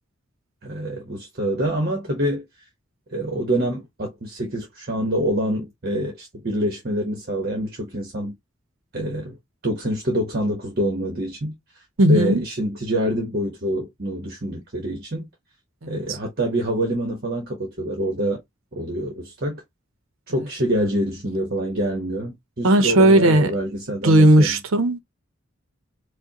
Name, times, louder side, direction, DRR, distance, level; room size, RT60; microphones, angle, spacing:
voice 1, 0.6-2.4 3.1-8.3 8.9-9.4 9.6-11.6 12.1-15.3 15.9-18.4 18.7-19.6 20.3-24.6, right 1 dB, 50° right, 1.1 m, -26 dB
voice 2, 12.0-12.4 15.8-16.2 22.6-23.5 24.0-25.0, right 1 dB, 90° right, 0.8 m, -16 dB
5.0 x 2.2 x 2.9 m
head